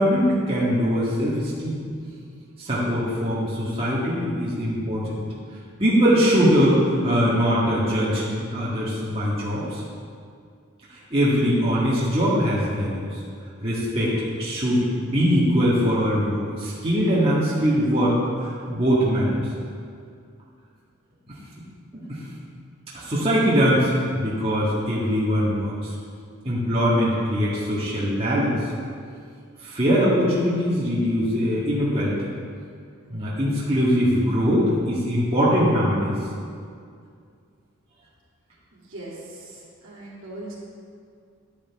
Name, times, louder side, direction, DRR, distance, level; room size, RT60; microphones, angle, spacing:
voice 1, 0.0-1.9 2.6-5.2 5.8-9.8 10.9-13.0 13.6-19.3 21.9-22.2 22.9-25.7 26.4-28.6 29.6-32.2 33.1-36.1, equal, 25° right, -9 dB, 1.9 m, -22 dB
voice 2, 38.7-40.6, right 1 dB, 65° right, -7 dB, 2.9 m, -40 dB
11.0 x 10.0 x 3.7 m, 2.2 s
head